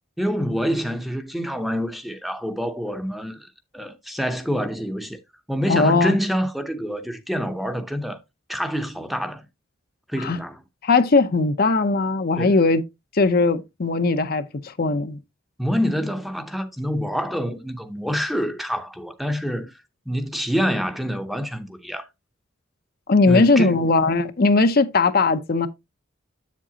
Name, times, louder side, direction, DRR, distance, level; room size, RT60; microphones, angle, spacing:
voice 1, 0.2-3.5 3.7-5.2 5.5-8.2 8.5-9.5 10.1-10.6 12.4-12.6 15.6-19.7 20.1-22.1 23.3-23.9, equal, ahead, 0.7 m, -26 dB
voice 2, 5.7-6.2 10.2-10.4 10.8-12.8 13.1-15.2 23.1-25.7, left 3 dB, 45° left, 0.6 m, -19 dB
7.7 x 7.4 x 2.8 m
head